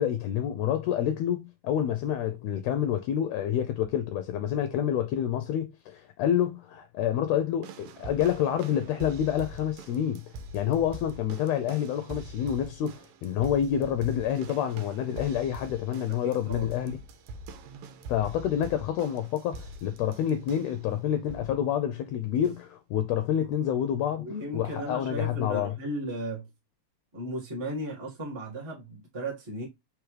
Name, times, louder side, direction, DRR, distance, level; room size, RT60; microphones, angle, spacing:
voice 1, 0.0-10.2 10.5-16.9 18.1-24.2 24.5-25.7, left 10 dB, 80° left, 1.6 m, -28 dB
sound 1, 7.6-20.9 21.3-21.7 22.4-22.5, right 2 dB, 80° right, 1.9 m, -44 dB
voice 2, 16.2-16.7 24.2-26.5 27.1-29.7, right 1 dB, 25° right, 0.5 m, -35 dB
4.9 x 3.3 x 3.1 m
omnidirectional pair, 3.4 m